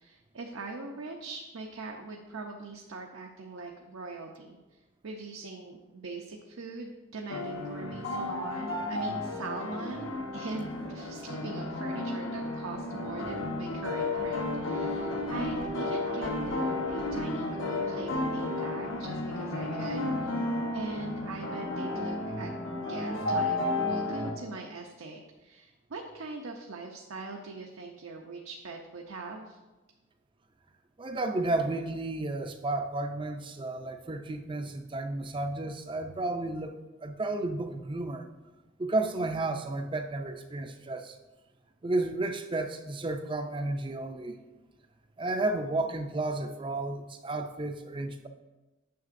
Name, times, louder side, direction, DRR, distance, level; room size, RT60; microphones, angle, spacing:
voice 1, 0.0-4.6 5.0-20.4 20.7-22.5 22.9-23.6 23.8-29.6, right 3 dB, 80° right, 1 dB, 0.7 m, -41 dB
sound 1, 7.3-24.3, left 2 dB, 70° left, 0.9 m, -32 dB
voice 2, 31.0-38.3 38.8-41.2 41.8-44.4 45.2-48.3, right 2 dB, 25° right, 7 dB, 0.4 m, -32 dB
9.3 x 6.5 x 2.6 m, 1.1 s
head